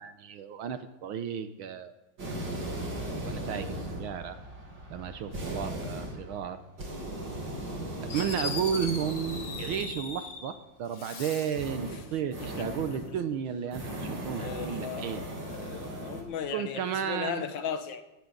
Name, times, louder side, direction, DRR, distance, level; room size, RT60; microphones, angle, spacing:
voice 1, 0.0-1.9 3.2-4.4 4.9-6.6 8.0-15.2 16.5-17.4, right 8 dB, 75° right, 1.6 m, -33 dB
sound 1, 2.2-10.1 11.5-13.1 13.6-16.2, right 1 dB, 55° right, 3.7 m, -38 dB
Fireworks, 8.1-10.5 10.9-11.7, left 4 dB, 85° left, 3.0 m, -39 dB
voice 2, 12.4-13.4 14.3-18.0, left 7 dB, 60° left, 1.7 m, -38 dB
18.0 x 17.0 x 3.9 m
omnidirectional pair, 2.4 m